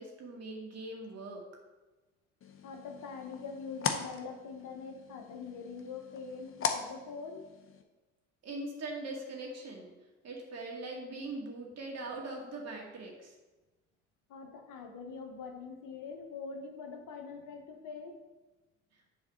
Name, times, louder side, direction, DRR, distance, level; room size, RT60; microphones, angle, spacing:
voice 1, 0.0-1.4 8.4-9.9 10.2-13.4, right 2 dB, 45° right, 0 dB, 2.2 m, -41 dB
sound 1, 2.4-7.8, left 6 dB, 35° left, 0.9 m, -39 dB
voice 2, 2.6-7.5 14.3-18.2, left 5 dB, 60° left, 4 dB, 1.3 m, -44 dB
7.1 x 4.0 x 6.5 m, 1.2 s
hypercardioid pair, 55°, 36 cm